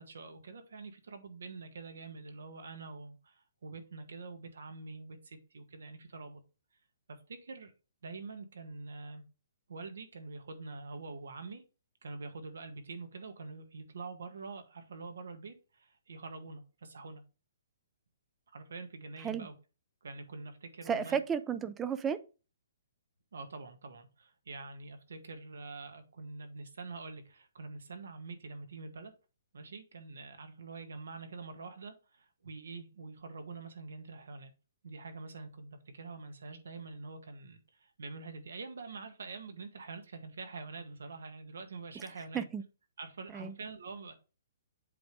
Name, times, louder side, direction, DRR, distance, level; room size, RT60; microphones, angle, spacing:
voice 1, 0.0-6.4 7.1-7.7 8.0-9.2 9.7-11.6 12.0-17.2 18.5-19.5 20.0-21.2 23.3-29.1 29.5-34.5 34.8-42.5 43.0-44.1, right 3 dB, 85° right, 1.7 m, -45 dB
voice 2, 20.9-22.2 42.3-42.6 43.3-43.5, right 7 dB, 10° right, 0.3 m, -33 dB
7.7 x 3.6 x 4.9 m
hypercardioid pair, 175°, 0 cm